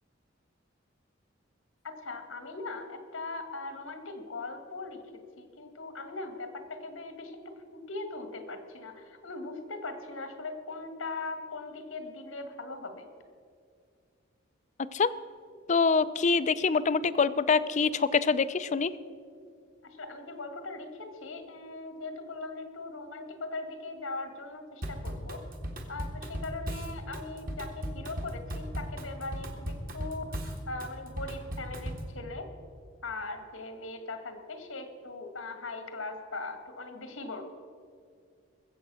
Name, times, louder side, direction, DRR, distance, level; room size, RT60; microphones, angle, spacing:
voice 1, 1.8-13.1 19.8-25.4 25.9-32.5 33.0-37.4, left 3 dB, 90° left, 7 dB, 1.8 m, -40 dB
voice 2, 15.7-18.9, left 5 dB, 35° left, 15 dB, 0.4 m, -25 dB
Drum kit / Drum, 24.8-32.1, equal, 45° right, 1.6 m, -37 dB
21.0 x 7.8 x 6.2 m, 2.2 s
head